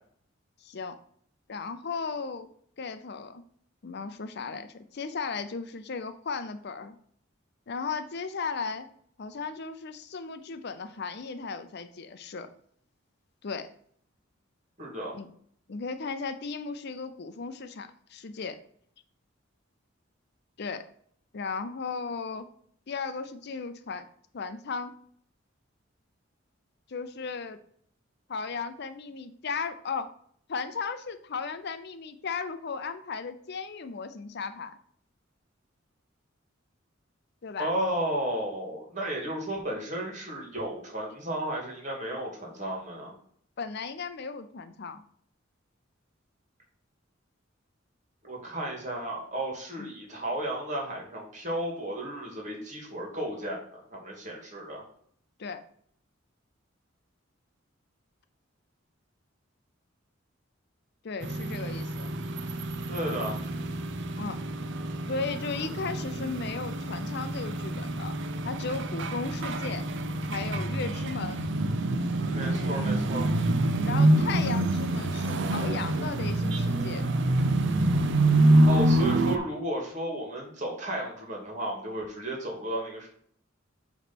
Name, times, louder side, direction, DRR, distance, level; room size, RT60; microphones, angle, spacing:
voice 1, 0.6-1.0 1.5-2.5 2.8-3.4 3.8-7.0 7.7-8.9 9.2-12.5 13.4-13.7 15.1-15.3 15.7-18.6 20.6-20.8 21.3-22.5 22.9-24.1 24.3-24.9 26.9-27.6 28.3-30.1 30.5-34.8 37.4-37.7 43.6-45.0 49.8-49.9 55.4-55.6 61.0-62.1 64.2-64.4 65.1-68.1 68.4-69.8 70.3-71.4 73.8-77.1, left 4 dB, 55° left, 10 dB, 0.6 m, -35 dB
voice 2, 14.8-15.2 37.6-43.1 48.2-54.8 62.9-63.4 72.2-73.3 78.7-83.1, right 1 dB, 40° right, -1 dB, 2.4 m, -33 dB
sound 1, 61.2-79.4, right 1 dB, 65° right, 0.6 m, -26 dB
8.1 x 3.2 x 6.1 m, 0.62 s
head